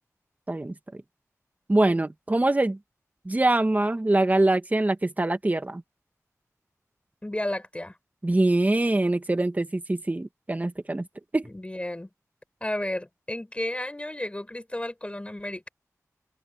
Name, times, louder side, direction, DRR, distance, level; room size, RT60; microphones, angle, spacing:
voice 1, 0.5-1.0 1.7-2.8 3.3-5.8 8.2-11.1 11.3-11.5, right 2 dB, 30° right, 1.7 m, -24 dB
voice 2, 7.2-8.0 11.4-12.1 12.6-15.7, left 1 dB, 20° left, 6.5 m, -32 dB
wide cardioid pair, 75°, 6 cm